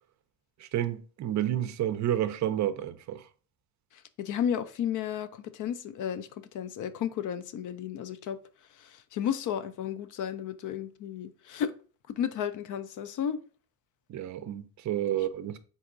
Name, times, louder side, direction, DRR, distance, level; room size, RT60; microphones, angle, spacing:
voice 1, 0.6-3.3 14.1-15.6, right 11 dB, 50° right, 0.5 m, -30 dB
voice 2, 3.9-8.4 8.7-11.7 12.1-13.4 15.1-15.2, left 9 dB, 55° left, 0.5 m, -33 dB
4.4 x 4.0 x 2.5 m
cardioid pair, 100°, 38 cm